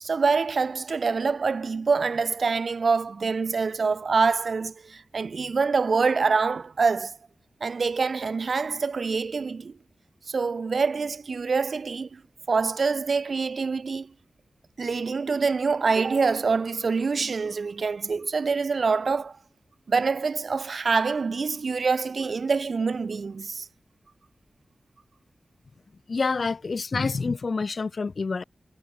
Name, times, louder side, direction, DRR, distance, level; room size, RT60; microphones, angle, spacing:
voice 1, 0.0-7.2 7.6-9.7 10.3-12.2 12.5-14.1 14.8-19.4 19.9-23.7, right 4 dB, 55° right, 1.3 m, -25 dB
voice 2, 26.1-28.4, left 4 dB, 50° left, 4.0 m, -27 dB
wide cardioid pair, 140°, 0 cm